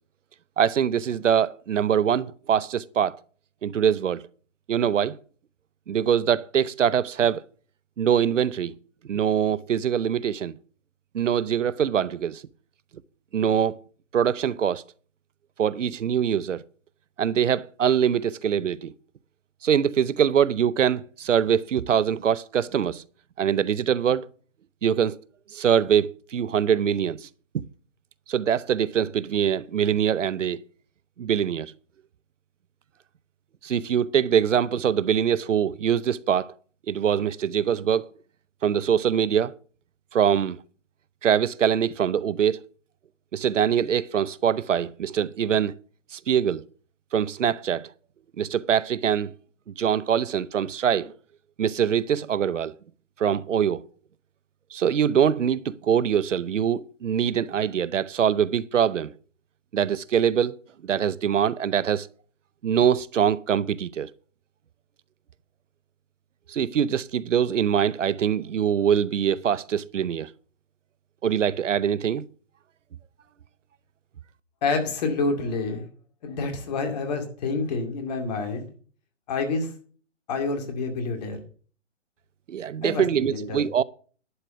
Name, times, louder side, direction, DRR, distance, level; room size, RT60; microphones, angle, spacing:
voice 1, 0.6-3.2 3.6-4.3 4.7-5.2 5.9-7.4 8.0-8.8 9.1-10.6 11.1-12.4 13.3-13.8 14.1-14.8 15.6-16.6 17.2-18.9 19.6-23.0 23.4-24.3 24.8-25.2 25.5-27.3 27.5-27.6 28.3-30.6 31.2-31.7 33.6-36.5 36.9-38.1 38.6-39.5 40.1-40.6 41.2-42.6 43.3-45.7 46.1-46.6 47.1-47.9 48.4-49.3 49.7-51.1 51.6-52.7 53.2-53.8 54.7-59.1 59.7-60.6 60.8-62.1 62.6-64.1 66.5-70.3 71.2-72.2 82.5-83.8, right 8 dB, 75° right, 0.7 m, -23 dB
voice 2, 74.6-75.9 76.2-78.7 79.3-79.7 80.3-81.4 82.8-83.6, left 3 dB, 35° left, 2.4 m, -28 dB
11.0 x 5.0 x 7.9 m
hypercardioid pair, 150°, 37 cm